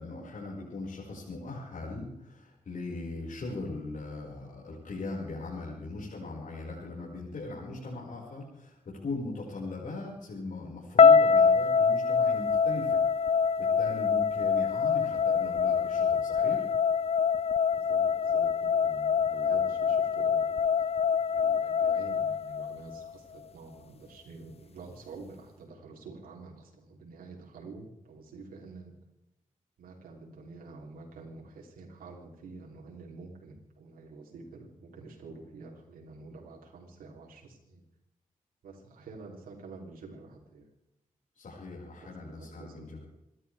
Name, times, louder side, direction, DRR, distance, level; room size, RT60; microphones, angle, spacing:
voice 1, 0.0-16.7 41.4-43.0, left 2 dB, 65° left, -4 dB, 5.7 m, -40 dB
sound 1, 11.0-23.1, left 6 dB, 45° left, 0.4 m, -25 dB
voice 2, 15.2-15.6 17.7-28.9 29.8-37.8 38.6-40.7 42.0-42.9, right 3 dB, 85° right, -2 dB, 3.4 m, -48 dB
28.0 x 12.5 x 3.5 m, 0.87 s
supercardioid pair, 40°, 15 cm